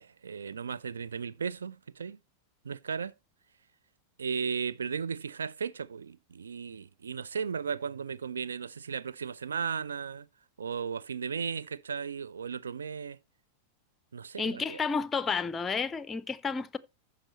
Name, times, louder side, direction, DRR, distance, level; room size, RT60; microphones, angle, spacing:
voice 1, 0.0-2.2 2.6-3.1 4.2-10.3 10.6-13.2 14.1-14.8, right 6 dB, 70° right, 0.4 m, -35 dB
voice 2, 14.4-16.8, left 5 dB, 15° left, 0.5 m, -31 dB
15.0 x 5.0 x 2.9 m
figure-of-eight pair, 90°, 0 cm